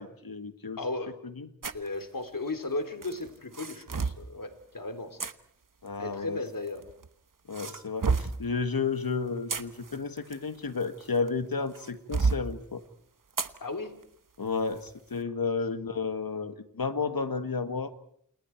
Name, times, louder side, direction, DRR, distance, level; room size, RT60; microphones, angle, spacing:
voice 1, 0.0-0.8 1.2-1.5 5.8-6.4 7.5-12.8 14.4-17.9, left 4 dB, 85° left, 10 dB, 1.8 m, -32 dB
voice 2, 0.8-1.1 1.7-5.2 6.0-6.8 13.6-13.9, left 2 dB, 70° left, 7 dB, 3.5 m, -35 dB
sound 1, 1.6-1.9 3.0-4.3 5.2-5.3 6.5-7.1 7.5-8.4 9.2-11.3 11.7-12.4 13.4-13.6 14.0-14.1 14.7-14.9, right 4 dB, 65° right, 1.1 m, -30 dB
29.5 x 28.5 x 4.6 m, 0.68 s
wide cardioid pair, 50°, 34 cm